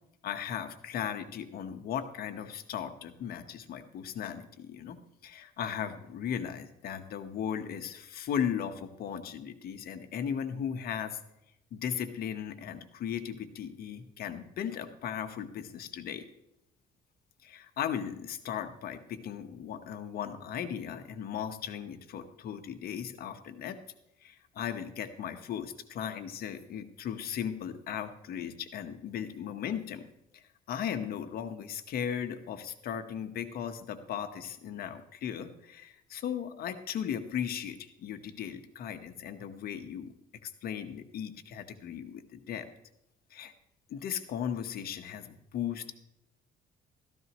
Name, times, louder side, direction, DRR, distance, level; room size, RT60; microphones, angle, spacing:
voice 1, 0.2-5.0 5.2-11.2 11.7-16.2 17.4-23.8 24.2-30.1 30.3-40.1 40.4-42.7 43.3-43.5 43.9-45.9, left 8 dB, 65° left, 8 dB, 1.2 m, -37 dB
14.5 x 14.0 x 3.0 m, 0.82 s
cardioid pair, 110°, 17 cm